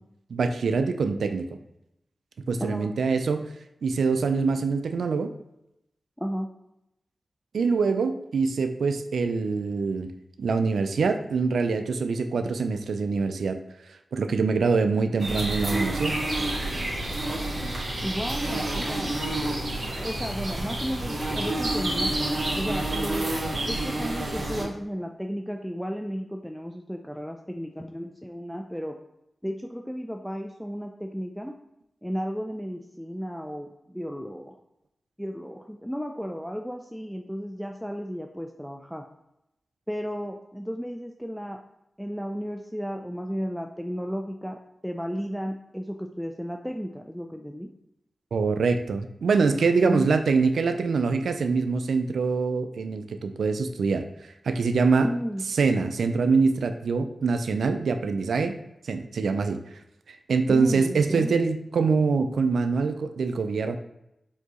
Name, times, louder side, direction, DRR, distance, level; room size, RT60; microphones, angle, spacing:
voice 1, 0.3-1.5 2.5-3.5 3.8-5.3 7.5-10.1 10.4-13.6 14.1-16.1 48.3-54.1 54.4-55.1 55.6-58.6 58.8-59.6 60.1-63.8, right 4 dB, 85° right, 8 dB, 0.3 m, -24 dB
voice 2, 6.2-6.5 18.0-19.1 19.8-22.1 22.5-23.3 23.6-29.0 29.4-31.5 32.0-34.6 35.2-39.0 39.9-41.6 42.0-44.6 44.8-47.7 49.9-50.1 55.0-55.4 60.5-61.3, equal, ahead, 3 dB, 0.3 m, -33 dB
Insects in forest making noises, 15.2-24.6, right 1 dB, 55° right, 1.4 m, -29 dB
4.4 x 2.8 x 2.9 m, 0.85 s
cardioid pair, 50°, 0 cm